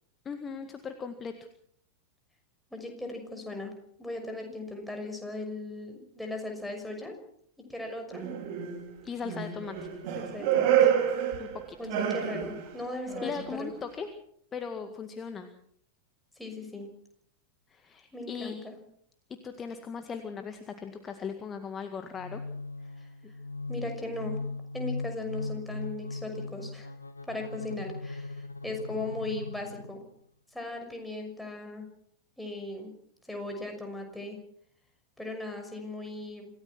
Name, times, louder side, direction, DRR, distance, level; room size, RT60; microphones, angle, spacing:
voice 1, 0.3-1.3 9.0-9.8 11.4-11.8 13.0-14.1 14.5-15.5 17.7-18.5 19.4-22.4 23.2-23.3, left 6 dB, 20° left, 7 dB, 1.9 m, -38 dB
voice 2, 2.7-3.7 4.0-7.2 7.7-8.2 10.1-10.9 11.8-13.7 16.4-16.9 18.1-18.8 23.0-23.1 23.7-24.4 24.7-26.9 27.3-30.0 30.5-31.9 32.4-32.9 33.3-34.4 35.2-36.5, left 2 dB, ahead, 2 dB, 6.2 m, -38 dB
sound 1, 8.1-8.9 9.2-12.8 13.1-13.6, right 9 dB, 45° right, 3.8 m, -28 dB
sound 2, 22.1-30.1, left 3 dB, 80° left, 1.9 m, -38 dB
27.0 x 17.5 x 6.2 m, 0.67 s
figure-of-eight pair, 90°, 0 cm